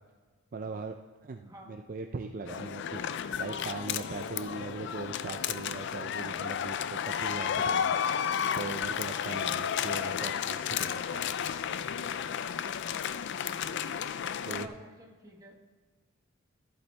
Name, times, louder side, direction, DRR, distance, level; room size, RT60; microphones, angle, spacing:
voice 1, 0.5-3.0 3.4-8.0 8.6-11.3 14.4-14.7, right 4 dB, 45° right, 5 dB, 0.4 m, -40 dB
voice 2, 1.4-1.7 14.5-15.6, right 1 dB, 20° right, 0 dB, 1.4 m, -49 dB
sound 1, 2.5-14.7, left 8 dB, 60° left, 0.4 m, -32 dB
14.0 x 8.2 x 3.3 m, 1.4 s
head